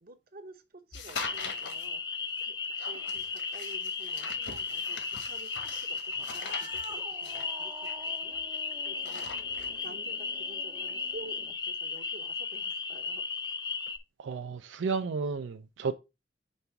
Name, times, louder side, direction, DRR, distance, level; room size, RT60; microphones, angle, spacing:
voice 1, 0.0-8.4 8.8-9.3 9.8-13.2, right 2 dB, 55° right, 0.9 m, -50 dB
sound 1, 0.9-1.9 2.8-8.6 8.9-9.9, left 4 dB, 75° left, 1.2 m, -42 dB
sound 2, 1.2-14.0, left 5 dB, 25° left, 0.5 m, -35 dB
Cat, 6.1-11.7, right 3 dB, 25° right, 0.5 m, -50 dB
voice 2, 14.2-15.9, right 5 dB, 85° right, 0.4 m, -32 dB
5.4 x 3.4 x 5.8 m
head